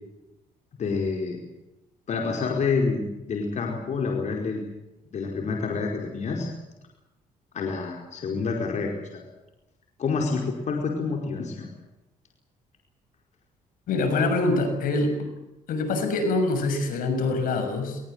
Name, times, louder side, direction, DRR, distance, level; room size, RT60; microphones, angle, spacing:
voice 1, 0.8-1.4 2.1-4.6 5.1-6.5 7.5-9.2 10.0-11.7, left 4 dB, 55° left, 1 dB, 4.8 m, -28 dB
voice 2, 13.9-15.3 15.7-18.0, left 2 dB, 75° left, 6 dB, 6.5 m, -25 dB
22.0 x 21.0 x 8.2 m, 0.97 s
cardioid pair, 90°, 14 cm